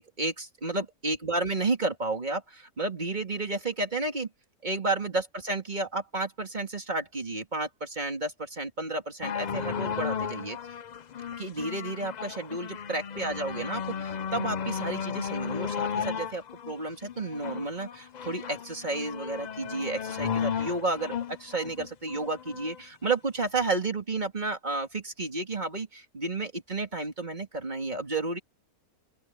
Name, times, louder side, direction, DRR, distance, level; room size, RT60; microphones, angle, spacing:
voice 1, 0.0-4.3 4.6-10.6 11.4-28.4, right 2 dB, 30° right, 2.3 m, -32 dB
sound 1, 9.2-22.8 23.6-23.7, left 7 dB, 85° left, 0.4 m, -34 dB
open air
omnidirectional pair, 1.5 m